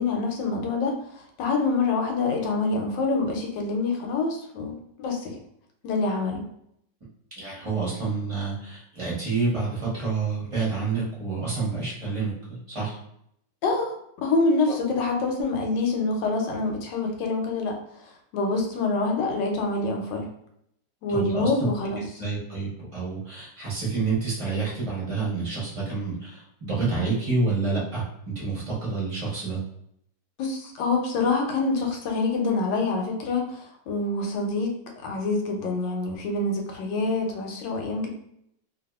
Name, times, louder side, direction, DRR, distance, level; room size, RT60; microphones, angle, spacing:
voice 1, 0.0-5.3 5.8-6.4 13.6-17.8 18.3-20.3 21.0-22.0 30.4-34.7 35.0-38.1, left 3 dB, 80° left, 2 dB, 1.3 m, -26 dB
voice 2, 7.4-13.0 14.7-14.8 21.1-21.7 22.2-29.6, right 4 dB, 25° right, -6 dB, 0.7 m, -28 dB
2.8 x 2.6 x 2.2 m, 0.73 s
omnidirectional pair, 2.0 m